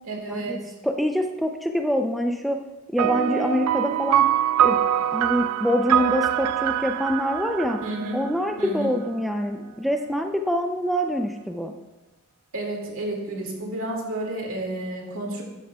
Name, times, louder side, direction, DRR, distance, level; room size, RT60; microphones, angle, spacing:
voice 1, 0.0-0.6 7.8-8.2 8.6-8.9 12.5-15.4, right 1 dB, 65° right, 0 dB, 2.1 m, -31 dB
voice 2, 0.8-2.6 2.9-4.3 4.6-4.8 5.1-7.8 8.1-11.7, equal, ahead, 4 dB, 0.4 m, -25 dB
sound 1, 3.0-8.8, right 10 dB, 85° right, 0.3 m, -24 dB
12.5 x 10.0 x 2.2 m, 1.1 s
head